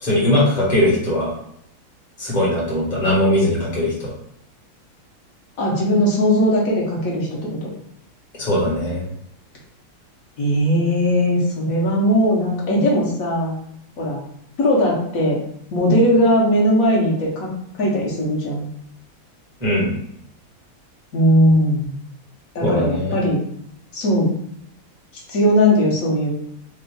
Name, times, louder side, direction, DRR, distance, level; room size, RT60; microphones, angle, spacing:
voice 1, 0.0-1.3 2.2-4.1 8.3-9.0 19.6-19.9 22.6-23.2, left 1 dB, 20° left, -6 dB, 1.5 m, -20 dB
voice 2, 5.6-7.7 10.4-13.5 14.0-14.2 14.6-15.4 15.7-17.5 17.8-18.7 21.1-21.9 22.5-23.4 23.9-24.3 25.3-26.3, equal, 50° left, -3 dB, 1.3 m, -18 dB
3.4 x 2.4 x 3.8 m, 0.72 s
omnidirectional pair, 2.2 m